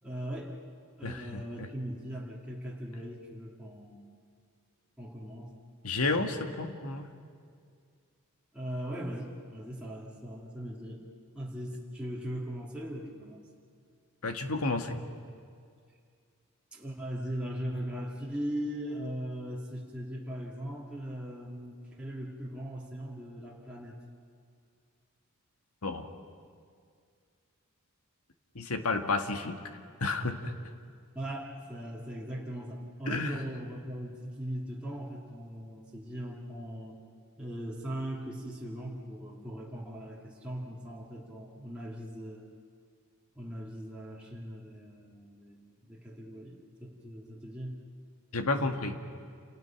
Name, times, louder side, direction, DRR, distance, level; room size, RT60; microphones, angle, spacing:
voice 1, 0.0-0.6 1.0-4.1 5.0-5.5 8.5-11.0 11.3-13.5 16.7-24.0 31.1-37.0 37.4-42.5 43.4-47.9 48.6-48.9, equal, 5° right, -6 dB, 2.5 m, -39 dB
voice 2, 1.0-1.7 5.8-7.1 14.2-15.0 25.8-26.0 28.6-29.6 30.0-30.5 33.1-33.4 48.3-48.9, left 3 dB, 80° left, 6 dB, 1.8 m, -31 dB
29.0 x 28.5 x 6.0 m, 2.2 s
head